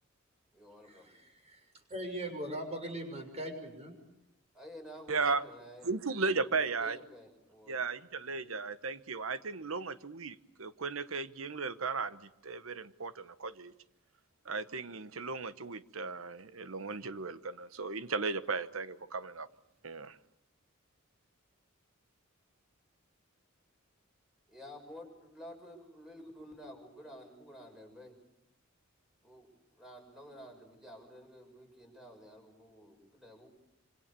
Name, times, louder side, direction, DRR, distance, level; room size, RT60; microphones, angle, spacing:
voice 1, 0.5-1.2 4.5-5.9 6.4-7.9 8.3-8.4 24.5-28.1 29.2-33.5, equal, ahead, 6.3 m, -51 dB
voice 2, 1.9-3.9, right 1 dB, 30° right, 6.5 m, -39 dB
voice 3, 5.1-5.4 5.8-7.0 7.7-13.7 14.4-19.5 19.8-20.2, right 4 dB, 85° right, 1.1 m, -36 dB
26.5 x 26.0 x 6.9 m
head